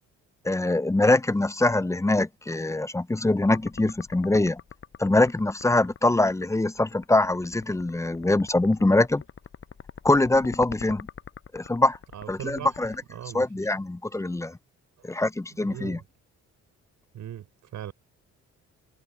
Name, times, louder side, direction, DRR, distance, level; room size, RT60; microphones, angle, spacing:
voice 1, 0.4-4.6 5.0-9.2 10.0-11.1 11.5-12.0 12.3-12.9 13.3-14.6 15.0-16.0, left 2 dB, 10° left, 0.6 m, -23 dB
sound 1, 3.4-13.0, left 7 dB, 45° left, 5.2 m, -43 dB
voice 2, 12.1-12.8 13.1-13.4 15.5-16.0 17.1-17.9, right 11 dB, 70° right, 4.9 m, -39 dB
cardioid pair, 90°, 30 cm